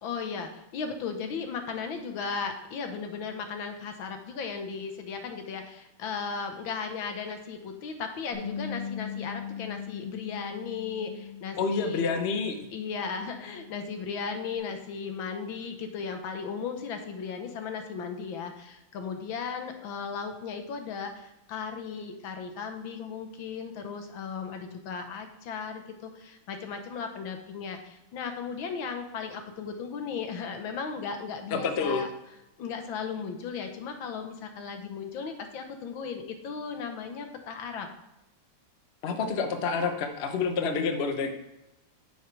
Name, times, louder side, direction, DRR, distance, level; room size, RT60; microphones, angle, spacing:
voice 1, 0.0-12.1 12.7-32.1 32.6-37.9, left 5 dB, 90° left, 6 dB, 1.8 m, -36 dB
Bass guitar, 8.3-14.6, left 7 dB, 70° left, 3.0 m, -40 dB
voice 2, 11.6-12.6 31.5-32.0 39.0-41.3, left 5 dB, 45° left, 6 dB, 0.9 m, -28 dB
9.4 x 7.2 x 3.3 m, 0.93 s
omnidirectional pair, 2.1 m